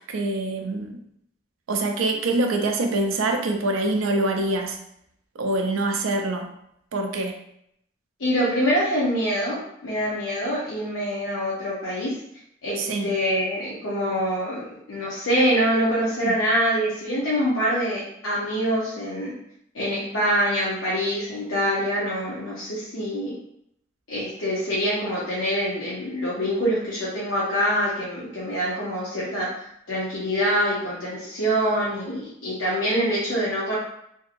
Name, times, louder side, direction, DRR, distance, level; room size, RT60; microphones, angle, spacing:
voice 1, 0.1-1.0 1.7-4.8 5.4-6.5 6.9-7.3 12.8-13.1 16.2-16.4, right 2 dB, 90° right, 4 dB, 0.4 m, -25 dB
voice 2, 8.2-12.2 12.6-19.3 19.7-23.3 24.1-29.5 29.9-33.7, equal, 70° left, -7 dB, 0.7 m, -25 dB
2.7 x 2.6 x 2.5 m, 0.74 s
head